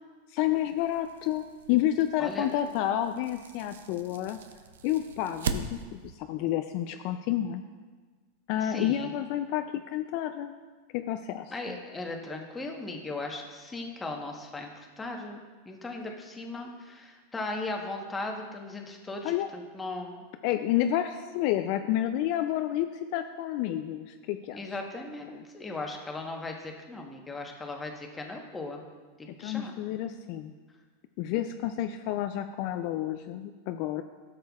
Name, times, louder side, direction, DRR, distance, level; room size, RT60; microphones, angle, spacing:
voice 1, 0.3-4.4 4.8-7.6 8.5-10.5 10.9-11.8 19.2-19.5 20.4-24.8 25.3-25.4 29.4-30.5 31.2-34.0, left 12 dB, 55° left, 8 dB, 0.3 m, -30 dB
sound 1, 0.5-6.1, right 5 dB, 85° right, 0.5 m, -40 dB
voice 2, 8.6-9.1 11.5-20.2 24.5-28.8 29.2-29.7, left 2 dB, 15° left, 2 dB, 1.1 m, -38 dB
12.5 x 6.7 x 2.4 m, 1.4 s
hypercardioid pair, 120°, 0 cm